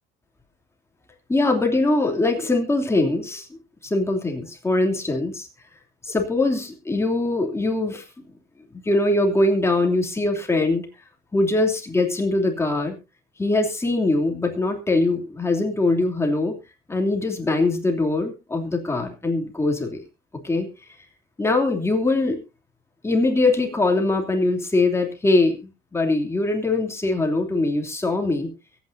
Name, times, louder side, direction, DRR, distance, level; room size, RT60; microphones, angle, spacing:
voice 1, 1.3-3.5 3.8-5.5 6.0-8.0 8.8-10.9 11.3-13.0 13.4-16.5 16.9-20.0 20.4-20.7 21.4-22.4 23.0-25.6 25.9-28.5, left 2 dB, 15° left, 3 dB, 2.9 m, -22 dB
23.0 x 9.3 x 2.7 m, 0.26 s
cardioid pair, 110°, 17 cm